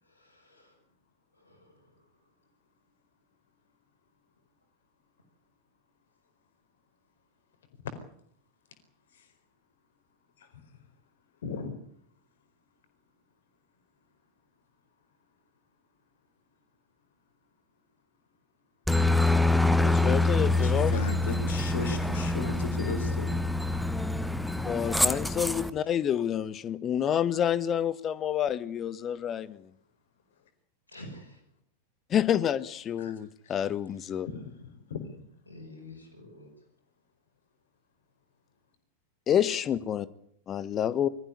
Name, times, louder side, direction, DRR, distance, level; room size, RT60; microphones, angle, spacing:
voice 1, 0.0-0.8 1.3-2.1 30.9-31.4 33.9-34.2 35.5-36.5, left 1 dB, 85° left, 7.0 m, -49 dB
voice 2, 11.4-11.8 20.4-23.4 33.0-33.2 33.4-33.6 34.3-35.0, left 4 dB, 60° left, 4.5 m, -36 dB
Aircraft, 18.9-25.7, left 2 dB, ahead, 1.2 m, -26 dB
voice 3, 19.5-21.0 24.6-29.6 32.1-34.3 39.3-40.1 40.5-41.1, left 9 dB, 25° left, 1.3 m, -28 dB
22.5 x 14.5 x 10.0 m
figure-of-eight pair, 90°, 0 cm